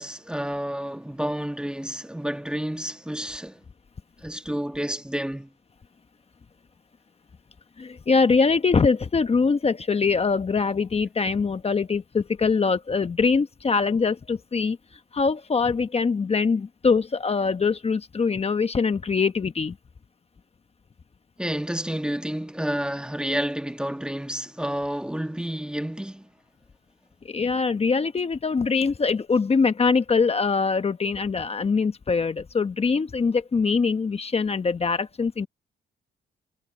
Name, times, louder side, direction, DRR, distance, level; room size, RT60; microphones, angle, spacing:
voice 1, 0.0-3.6 4.2-5.5 21.4-26.3, equal, 5° right, 1.4 m, -30 dB
voice 2, 7.8-14.8 15.1-19.8 27.2-35.5, left 5 dB, 30° left, 1.1 m, -23 dB
cardioid pair, 90°, 20 cm